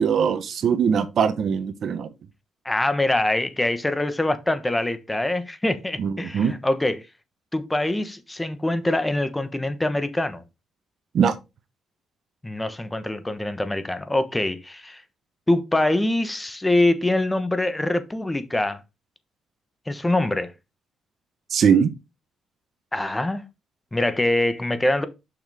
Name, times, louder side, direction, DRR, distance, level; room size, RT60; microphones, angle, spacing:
voice 1, 0.0-2.1 6.0-6.5 11.1-11.3 21.5-21.9, right 7 dB, 60° right, 1.0 m, -21 dB
voice 2, 2.6-7.1 7.5-10.4 12.4-15.0 15.5-18.8 19.9-20.5 22.9-23.4 23.9-25.1, left 1 dB, 15° left, 1.1 m, -24 dB
6.4 x 6.2 x 3.5 m
cardioid pair, 90°, 0 cm